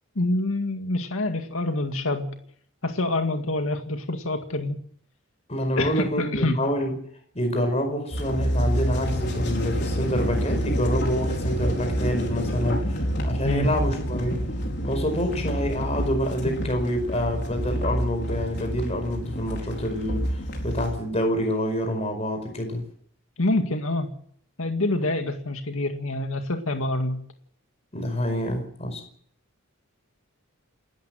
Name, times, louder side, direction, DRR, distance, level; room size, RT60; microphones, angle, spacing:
voice 1, 0.2-2.3 2.8-4.8 5.8-6.6 13.4-13.7 23.4-24.1 24.6-27.2, left 2 dB, 70° left, 2.1 m, -26 dB
voice 2, 5.5-6.9 7.4-14.4 14.8-22.8 27.9-29.0, equal, 30° left, 5.0 m, -27 dB
sound 1, 8.1-21.0, equal, 50° left, 4.6 m, -28 dB
29.0 x 13.5 x 7.7 m
head